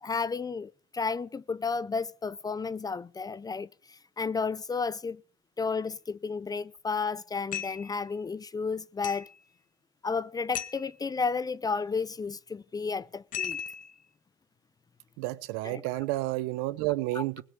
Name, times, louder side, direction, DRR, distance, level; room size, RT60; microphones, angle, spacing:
voice 1, 0.0-5.2 5.6-9.3 10.0-13.6 15.6-15.8 17.1-17.2, left 5 dB, 25° left, 0.6 m, -32 dB
sound 1, 7.5-7.9 9.0-9.4 10.5-10.9 13.3-13.9, left 8 dB, 60° left, 1.7 m, -36 dB
voice 2, 15.2-17.4, right 18 dB, 85° right, 0.9 m, -30 dB
20.0 x 6.8 x 8.4 m
supercardioid pair, 75°, 15 cm